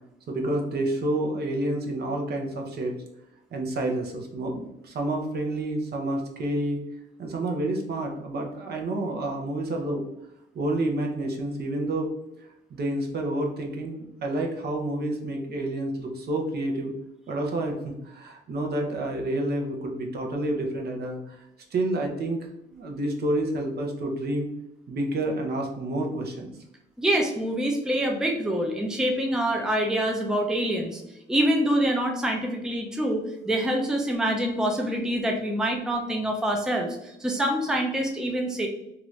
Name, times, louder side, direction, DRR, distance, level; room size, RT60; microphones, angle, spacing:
voice 1, 0.3-3.0 3.5-6.8 7.2-10.0 10.5-12.1 12.7-16.9 17.3-21.4 21.7-24.5 24.9-26.5, right 1 dB, 55° right, 1 dB, 0.7 m, -29 dB
voice 2, 27.0-31.0 31.3-38.7, right 1 dB, 5° right, 2 dB, 0.5 m, -26 dB
2.9 x 2.5 x 3.1 m, 0.86 s
cardioid pair, 90°, 20 cm